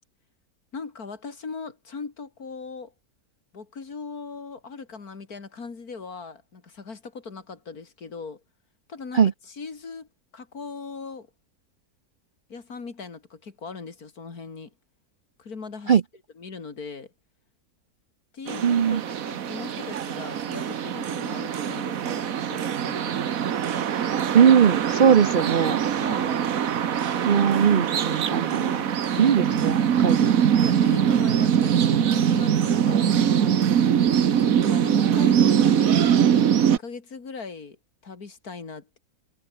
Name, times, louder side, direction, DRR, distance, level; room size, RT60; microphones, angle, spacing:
voice 1, 0.7-2.9 3.5-8.4 8.9-10.1 10.3-11.3 12.5-14.7 15.4-16.0 16.3-17.1 18.3-23.3 26.0-26.5 30.6-33.7 34.4-35.9 36.6-37.8 38.0-39.0, left 4 dB, 75° left, 3.1 m, -39 dB
sound 1, 18.5-36.8, right 8 dB, 65° right, 1.5 m, -23 dB
voice 2, 18.6-19.0 24.3-25.8 27.2-28.8 29.2-30.4, right 7 dB, 50° right, 0.6 m, -20 dB
omnidirectional pair, 1.6 m